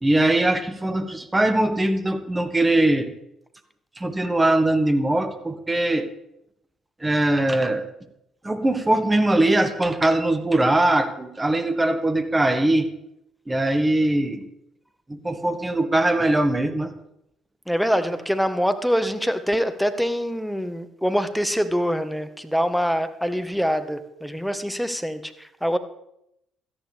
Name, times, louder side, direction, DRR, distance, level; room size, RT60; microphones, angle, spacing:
voice 1, 0.0-3.1 4.0-6.1 7.0-7.8 8.4-12.9 13.5-14.5 15.1-16.9, right 1 dB, 20° right, 9 dB, 1.6 m, -21 dB
voice 2, 17.7-25.8, equal, ahead, 10 dB, 1.4 m, -24 dB
17.5 x 13.5 x 3.5 m, 0.80 s
figure-of-eight pair, 50°, 0 cm